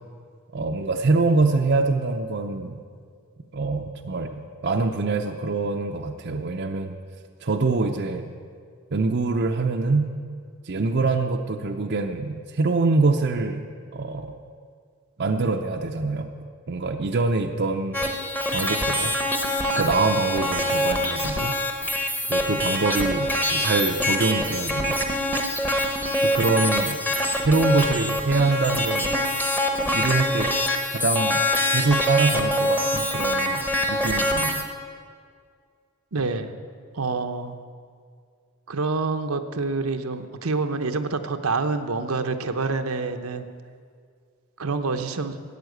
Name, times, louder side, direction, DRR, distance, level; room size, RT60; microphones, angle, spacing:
voice 1, 0.5-2.8 3.5-7.0 7.4-8.3 8.9-10.1 10.6-14.3 15.2-16.3 16.7-18.0 18.5-19.1 19.8-21.6 22.3-25.0 26.2-27.0 27.3-29.1 29.9-30.5 30.9-31.4 31.7-34.7, right 3 dB, 50° right, 5 dB, 0.6 m, -24 dB
sound 1, 17.9-34.7, left 1 dB, 10° left, 1.0 m, -24 dB
voice 2, 36.1-36.5 36.9-37.6 38.7-43.5 44.6-45.4, right 3 dB, 75° right, 7 dB, 0.9 m, -27 dB
13.5 x 9.0 x 7.9 m, 2.1 s
head